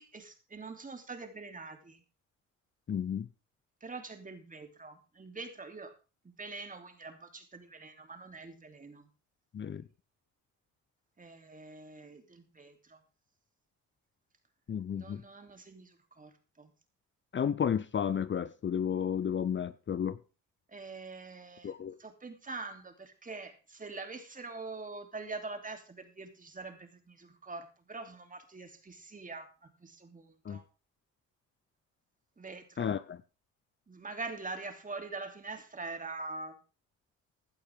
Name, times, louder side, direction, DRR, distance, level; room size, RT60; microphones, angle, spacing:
voice 1, 0.0-2.0 3.8-5.9 6.2-9.1 11.2-13.0 15.0-16.3 16.6-16.7 20.7-21.7 22.0-30.6 32.4-32.9 33.9-36.5, right 3 dB, 25° right, 3.1 m, -44 dB
voice 2, 2.9-3.3 9.5-9.8 14.7-15.2 17.3-20.2 21.6-22.0 30.4-30.6 32.8-33.2, left 8 dB, 40° left, 0.7 m, -32 dB
16.0 x 11.5 x 3.7 m
cardioid pair, 90°, 30 cm